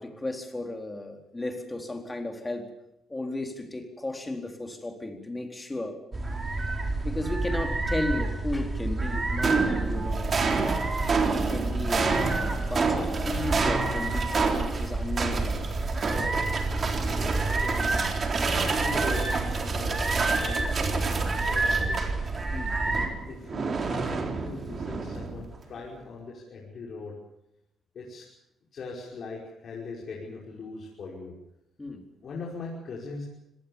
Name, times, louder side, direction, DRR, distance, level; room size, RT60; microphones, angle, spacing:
voice 1, 0.0-2.7 3.1-6.0 7.0-10.4 11.3-15.6 16.0-16.4 22.5-22.8 31.8-32.1, left 2 dB, 15° left, 4 dB, 4.1 m, -34 dB
sound 1, 6.1-23.1, right 2 dB, 25° right, 5.0 m, -29 dB
sound 2, 9.1-22.5 22.8-25.6, right 4 dB, 40° right, 3.9 m, -29 dB
voice 2, 17.6-17.9 18.5-22.1 22.8-27.2 27.9-28.3 28.7-31.3 32.2-33.3, left 3 dB, 55° left, -3 dB, 5.6 m, -41 dB
25.5 x 18.5 x 7.3 m, 0.84 s
cardioid pair, 90°, 0 cm